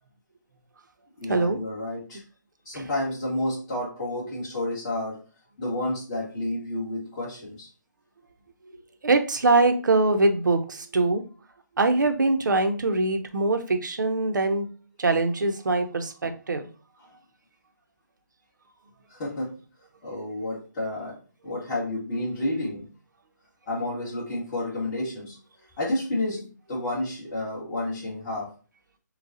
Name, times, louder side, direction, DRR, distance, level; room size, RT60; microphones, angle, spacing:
voice 1, 1.2-2.2 2.6-5.2 5.6-7.7 16.2-16.3 19.1-19.6 20.0-22.9 23.7-25.4 25.8-28.5, left 1 dB, 20° left, -6 dB, 1.7 m, -30 dB
voice 2, 9.0-11.2 11.8-14.7 15.0-16.7, right 2 dB, 75° right, 7 dB, 0.8 m, -23 dB
6.9 x 2.3 x 2.7 m, 0.37 s
hypercardioid pair, 160°, 10 cm